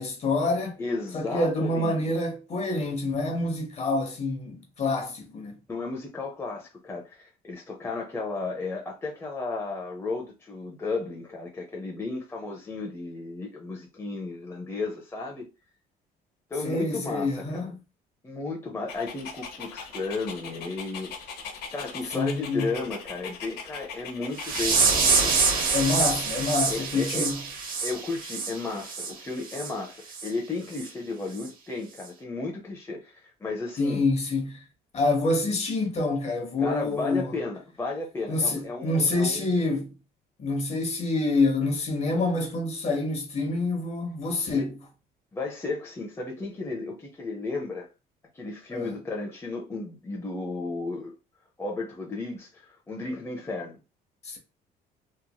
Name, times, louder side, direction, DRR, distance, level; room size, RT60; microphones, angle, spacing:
voice 1, 0.0-0.8 1.1-5.6 16.6-17.7 22.1-22.7 25.7-27.4 33.8-34.6 34.9-37.3 38.3-39.9 40.4-44.8 48.7-49.0 54.2-54.4, left 2 dB, 40° left, 1.0 m, -27 dB
voice 2, 0.8-2.1 5.7-15.5 16.5-17.7 18.2-21.2 21.7-25.3 26.6-27.3 27.8-34.0 36.6-39.5 44.5-44.7 45.3-47.9 48.3-51.2 51.6-53.8, left 3 dB, 15° left, 0.6 m, -34 dB
Dog, 18.9-24.9, left 6 dB, 70° left, 0.8 m, -40 dB
sound 1, 24.4-29.1 29.5-29.7 30.1-30.3 30.8-30.9 31.4-31.5, right 4 dB, 55° right, 0.9 m, -26 dB
2.9 x 2.7 x 2.2 m
cardioid pair, 110°, 17 cm